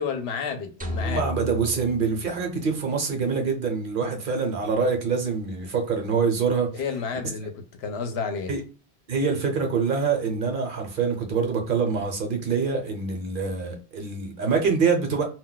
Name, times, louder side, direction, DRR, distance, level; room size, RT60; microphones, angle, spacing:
voice 1, 0.0-1.3 6.7-8.5, left 5 dB, 80° left, 0.8 m, -31 dB
sound 1, 0.8-3.1, left 2 dB, 15° right, 0.3 m, -34 dB
voice 2, 1.0-6.8 8.5-8.6 9.1-15.2, right 5 dB, 55° right, 0.8 m, -25 dB
2.2 x 2.2 x 3.8 m
omnidirectional pair, 1.1 m